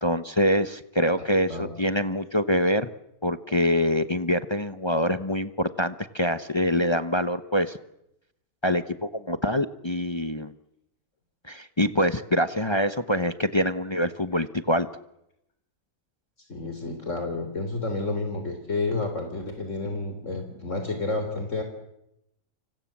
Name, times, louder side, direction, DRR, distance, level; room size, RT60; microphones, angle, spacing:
voice 1, 0.0-2.9 3.2-7.8 8.6-10.5 11.4-14.9, equal, 20° left, 11 dB, 0.9 m, -25 dB
voice 2, 16.5-21.6, left 3 dB, 50° left, 5 dB, 3.8 m, -30 dB
30.0 x 25.5 x 7.4 m, 0.82 s
omnidirectional pair, 1.6 m